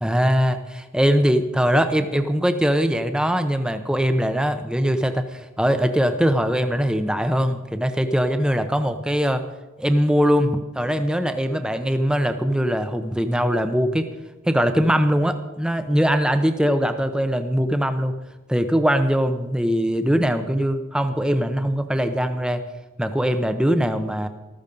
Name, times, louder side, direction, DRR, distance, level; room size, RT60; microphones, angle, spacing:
voice 1, 0.0-9.4 9.8-14.1 14.5-18.2 18.5-22.6 23.0-24.3, equal, 5° right, 9 dB, 0.6 m, -21 dB
14.0 x 13.5 x 5.2 m, 1.2 s
head